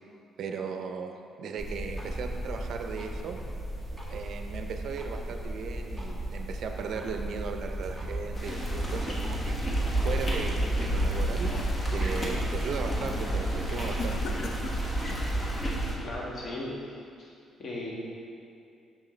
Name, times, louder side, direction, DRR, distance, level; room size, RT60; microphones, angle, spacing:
voice 1, 0.4-1.1 1.4-3.4 4.1-9.6 10.0-11.5 11.9-14.3, right 5 dB, 70° right, 4 dB, 0.5 m, -37 dB
sound 1, 1.6-15.3, right 1 dB, 5° left, 1.2 m, -37 dB
sound 2, 8.3-16.0, right 1 dB, 25° left, 1.2 m, -30 dB
sound 3, 9.6-10.6 11.0-12.4 12.8-13.1 14.0-15.3, left 3 dB, 65° left, 0.5 m, -42 dB
voice 2, 16.0-17.3 17.6-17.9, left 2 dB, 50° left, -4 dB, 1.5 m, -37 dB
6.3 x 6.2 x 3.2 m, 2.5 s
cardioid pair, 90°, 0 cm